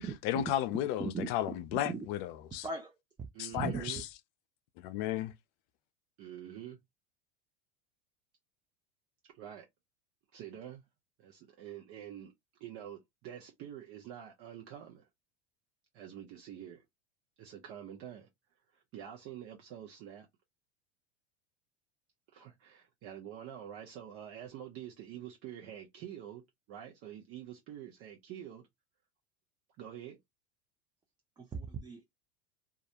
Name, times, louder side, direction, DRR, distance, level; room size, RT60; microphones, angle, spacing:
voice 1, 0.2-2.7 3.4-4.1 4.8-5.3, left 12 dB, 55° left, 0.4 m, -34 dB
voice 2, 1.7-2.1 2.6-2.9 3.6-3.8 31.4-32.0, right 5 dB, 15° right, 0.4 m, -37 dB
voice 3, 3.3-4.0 6.2-6.8 9.3-9.7 10.3-10.8 11.2-12.3 12.6-15.1 15.9-16.8 17.4-18.3 18.7-20.3 22.3-26.4 26.7-28.6 29.8-30.2, right 10 dB, 45° right, 0.7 m, -47 dB
2.4 x 2.1 x 2.8 m
hypercardioid pair, 95°, 31 cm